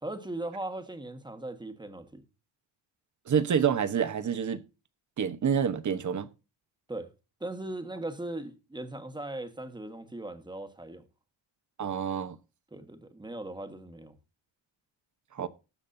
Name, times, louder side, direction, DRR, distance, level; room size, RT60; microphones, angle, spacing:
voice 1, 0.0-2.2 6.9-7.1 7.4-11.1 12.7-14.1, right 2 dB, 10° right, 1.4 m, -38 dB
voice 2, 3.3-4.6 5.2-6.3 11.8-12.4 15.3-15.5, right 7 dB, 40° right, 1.0 m, -27 dB
19.5 x 7.3 x 2.7 m
cardioid pair, 140°, 47 cm